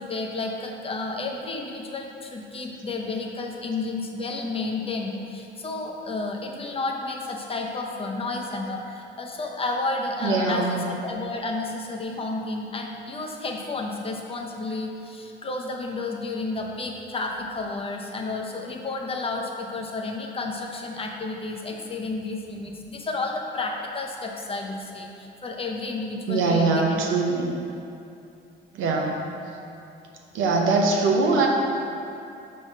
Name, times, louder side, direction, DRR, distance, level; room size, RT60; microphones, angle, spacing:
voice 1, 0.0-27.0, left 3 dB, 30° left, 1 dB, 0.7 m, -31 dB
voice 2, 10.2-10.8 26.3-27.5 28.7-29.2 30.3-31.5, right 3 dB, 90° right, 0 dB, 0.8 m, -22 dB
5.4 x 3.2 x 5.4 m, 2.6 s
cardioid pair, 90°, 20 cm